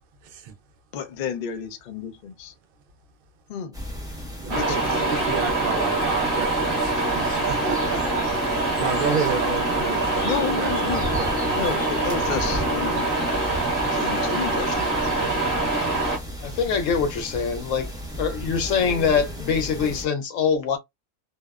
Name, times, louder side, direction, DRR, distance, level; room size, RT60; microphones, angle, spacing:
voice 1, 0.2-0.5 4.4-11.3, right 5 dB, 60° right, 0.6 m, -31 dB
voice 2, 0.9-2.5 3.5-3.8 4.5-5.1 10.2-11.2 11.5-13.1 13.9-15.0, left 7 dB, 60° left, 0.5 m, -31 dB
sound 1, 3.7-20.0, equal, 5° right, 0.6 m, -35 dB
sound 2, 4.5-16.2, right 2 dB, 20° right, 1.1 m, -24 dB
voice 3, 16.4-17.9 18.2-20.8, left 6 dB, 80° left, 1.0 m, -24 dB
2.7 x 2.1 x 2.2 m
omnidirectional pair, 1.3 m